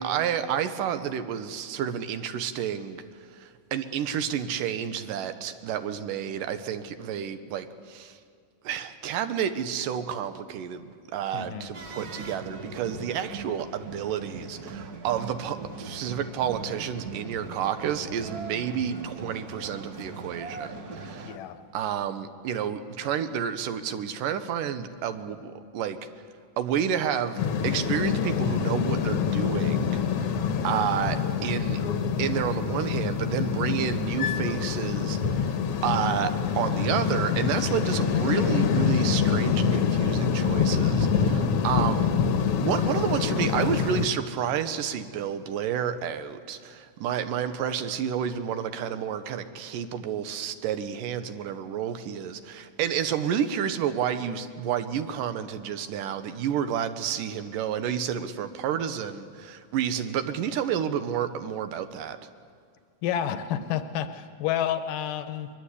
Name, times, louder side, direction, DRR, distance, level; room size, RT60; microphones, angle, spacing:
voice 1, 0.0-3.0 3.3-8.2 8.6-10.8 11.1-21.3 21.7-26.0 26.6-30.4 30.6-31.8 32.2-35.6 35.8-42.1 42.6-62.2, right 9 dB, 80° right, 10 dB, 2.6 m, -30 dB
voice 2, 11.3-11.7 21.2-21.6 63.0-65.5, left 10 dB, 80° left, 10 dB, 2.6 m, -30 dB
sound 1, 11.7-21.4, right 3 dB, 45° right, 1.3 m, -40 dB
sound 2, 27.4-44.1, left 6 dB, 60° left, 1.8 m, -25 dB
22.5 x 21.5 x 8.4 m, 2.2 s
omnidirectional pair, 3.8 m